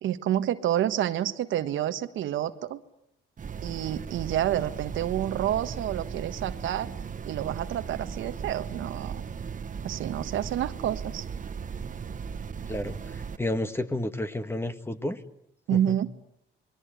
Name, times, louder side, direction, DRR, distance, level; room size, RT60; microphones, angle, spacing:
voice 1, 0.0-2.8 3.6-6.9 7.3-9.2 9.8-11.2 15.7-16.1, right 11 dB, 80° right, 10 dB, 1.3 m, -29 dB
sound 1, 3.4-13.4, right 6 dB, 40° right, 1.2 m, -37 dB
voice 2, 12.7-15.2 15.7-16.0, left 1 dB, 10° left, 10 dB, 1.7 m, -31 dB
28.0 x 21.5 x 9.5 m, 0.78 s
cardioid pair, 90°, 20 cm